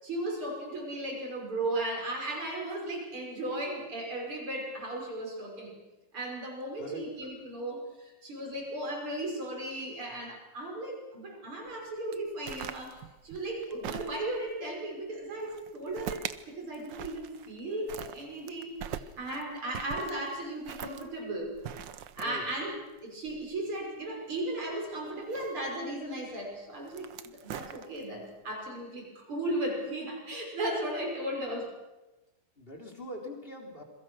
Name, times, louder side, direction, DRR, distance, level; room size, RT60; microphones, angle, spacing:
voice 1, 0.0-5.8 6.1-21.5 22.2-22.7 23.0-31.7, right 1 dB, 80° right, 0 dB, 6.8 m, -36 dB
sound 1, 12.1-14.5 15.4-16.4 16.7-17.6 17.9-24.0 25.1-25.9 26.7-28.2, right 9 dB, 65° right, 1.5 m, -42 dB
voice 2, 32.6-33.8, equal, 25° left, 2 dB, 4.1 m, -42 dB
27.5 x 22.5 x 6.4 m, 1.0 s
omnidirectional pair, 2.3 m